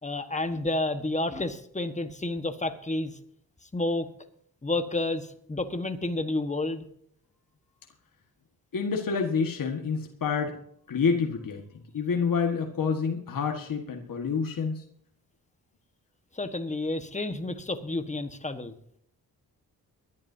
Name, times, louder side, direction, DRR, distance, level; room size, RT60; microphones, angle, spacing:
voice 1, 0.0-3.2 3.7-4.1 4.6-6.8 16.3-18.7, left 2 dB, 20° left, 9 dB, 1.4 m, -30 dB
voice 2, 8.7-10.6 10.9-11.6 11.9-14.8, left 5 dB, 60° left, 3 dB, 1.7 m, -28 dB
23.0 x 11.0 x 2.8 m, 0.67 s
cardioid pair, 70°, 36 cm